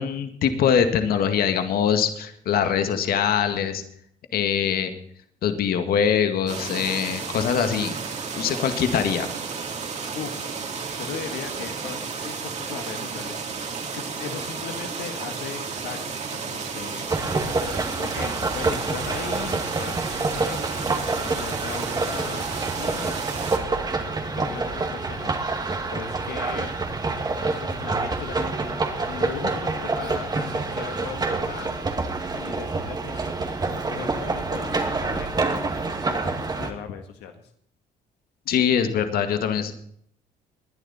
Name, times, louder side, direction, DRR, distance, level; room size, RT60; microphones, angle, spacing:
voice 1, 0.0-3.8 4.3-4.9 5.4-7.9 8.4-9.3 38.5-39.7, left 8 dB, 60° left, 8 dB, 2.0 m, -23 dB
sound 1, 6.5-23.6, right 5 dB, 40° right, 3.4 m, -32 dB
voice 2, 10.1-10.6 10.9-17.3 18.0-20.7 21.2-23.2 24.1-26.7 27.5-33.3 33.6-35.5 36.0-37.5, left 8 dB, 80° left, 5 dB, 1.8 m, -38 dB
sound 2, 17.1-36.7, right 3 dB, 25° right, 2.3 m, -27 dB
20.0 x 11.0 x 4.3 m, 0.66 s
cardioid pair, 110°, 17 cm